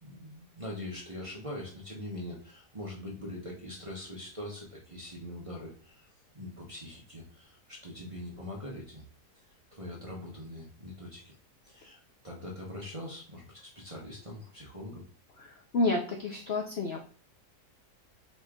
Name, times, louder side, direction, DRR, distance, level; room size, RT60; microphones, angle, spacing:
voice 1, 0.0-6.0 6.3-9.0 9.4-11.3 11.6-15.0, left 1 dB, 30° right, -5 dB, 0.6 m, -42 dB
voice 2, 15.4-17.0, left 2 dB, 80° left, 1 dB, 0.5 m, -30 dB
4.2 x 3.1 x 3.5 m, 0.43 s
omnidirectional pair, 1.8 m